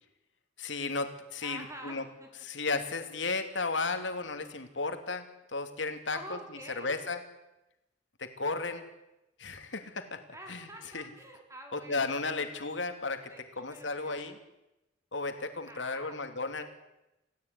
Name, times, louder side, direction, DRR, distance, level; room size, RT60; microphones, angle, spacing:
voice 1, 0.6-2.0 2.4-5.3 5.5-6.4 6.8-7.2 8.2-8.8 9.4-10.2 10.5-10.7 10.9-11.0 11.7-13.3 13.6-14.4 15.1-16.6, left 3 dB, 75° left, 7 dB, 2.9 m, -34 dB
voice 2, 1.4-2.3 6.1-7.0 10.3-12.6 13.3-14.3 15.6-16.2, right 1 dB, 15° right, 3 dB, 5.0 m, -48 dB
28.5 x 16.5 x 9.7 m, 0.96 s
head